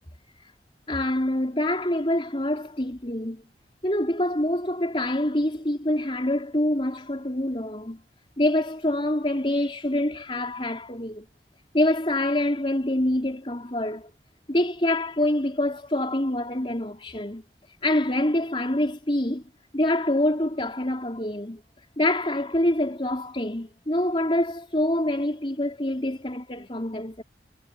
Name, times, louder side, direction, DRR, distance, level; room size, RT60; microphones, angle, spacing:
voice 1, 0.9-3.4 3.8-8.0 8.4-11.2 11.7-14.1 14.5-17.4 17.8-19.4 19.7-21.6 22.0-27.2, left 1 dB, 30° left, 4.0 m, -26 dB
head